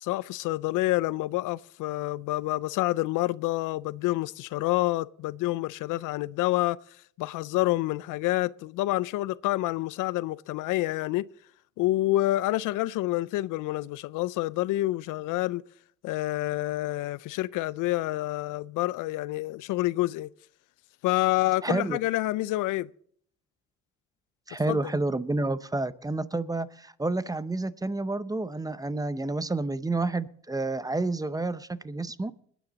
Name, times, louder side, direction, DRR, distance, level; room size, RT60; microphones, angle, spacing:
voice 1, 0.0-6.8 7.2-11.3 11.8-15.6 16.0-20.3 21.0-22.9 24.7-24.8, left 17 dB, 90° left, 0.5 m, -28 dB
voice 2, 21.6-22.0 24.5-32.3, right 2 dB, 10° right, 0.6 m, -29 dB
21.0 x 9.3 x 4.0 m
cardioid pair, 90°, 30 cm